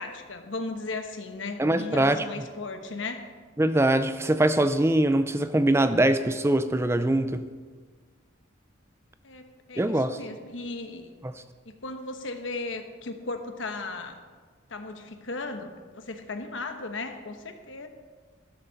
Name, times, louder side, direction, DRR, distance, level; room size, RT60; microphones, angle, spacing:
voice 1, 0.0-3.3 9.2-11.1 11.7-14.2 14.7-17.9, left 3 dB, 80° left, 6 dB, 1.1 m, -36 dB
voice 2, 1.6-2.2 3.6-7.5 9.8-10.2, right 1 dB, 15° right, 11 dB, 0.5 m, -23 dB
13.0 x 12.0 x 4.1 m, 1.5 s
head